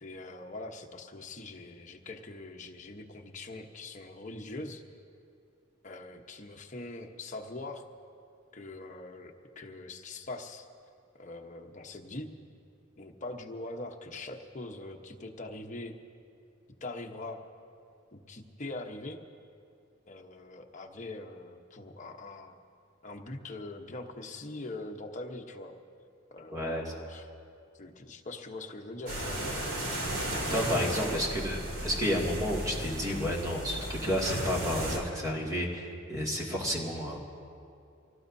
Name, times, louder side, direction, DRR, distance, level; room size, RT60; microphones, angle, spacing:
voice 1, 0.0-4.8 5.8-7.8 8.5-10.7 11.2-12.3 13.0-15.9 16.8-17.4 18.1-19.2 20.1-22.6 23.0-25.7 26.3-27.3 27.8-29.9 30.9-31.2, left 2 dB, 40° left, 3 dB, 1.0 m, -42 dB
voice 2, 26.5-26.9 30.5-37.2, equal, 20° right, -3 dB, 2.3 m, -31 dB
sound 1, 29.1-35.0, right 1 dB, 85° right, 2.9 m, -35 dB
25.0 x 18.0 x 2.7 m, 2.4 s
head